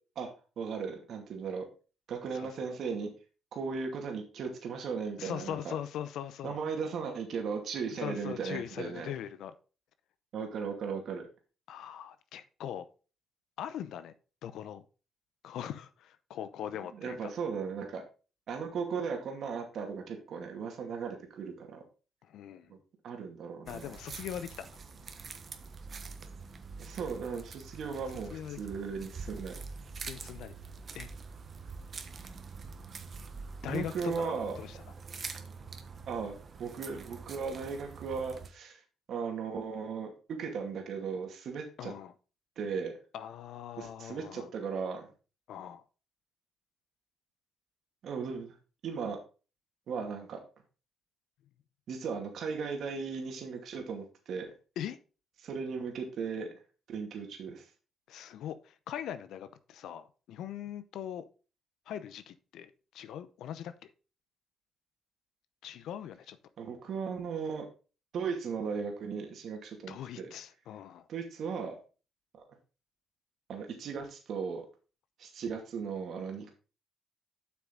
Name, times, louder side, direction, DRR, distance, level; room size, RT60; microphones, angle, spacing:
voice 1, 0.6-1.7 2.1-3.1 3.5-5.7 6.4-9.1 10.3-11.2 16.9-18.0 18.5-21.8 22.7-22.8 23.0-23.9 26.8-29.5 33.7-34.6 36.1-38.8 39.1-41.9 42.6-42.9 43.8-45.0 48.0-48.5 48.8-49.2 49.9-50.4 51.9-54.5 55.4-56.5 56.9-57.6 66.6-67.7 68.1-70.3 71.1-71.7 73.5-74.6 75.2-76.5, right 5 dB, 65° right, 2.3 m, -37 dB
voice 2, 2.3-2.8 5.2-6.6 7.9-9.5 11.7-12.9 13.6-14.1 14.4-14.8 15.4-17.3 22.2-22.7 23.7-24.7 27.9-28.0 28.3-28.6 30.0-30.5 30.9-31.1 33.6-34.3 34.6-34.8 41.8-42.1 43.1-44.5 45.5-45.8 54.8-55.0 58.1-61.3 61.9-63.7 65.6-66.4 69.9-71.1, left 10 dB, 80° left, 0.7 m, -41 dB
sound 1, 23.7-38.5, right 4 dB, 45° right, 1.1 m, -45 dB
7.9 x 6.1 x 3.9 m
cardioid pair, 90°, 0 cm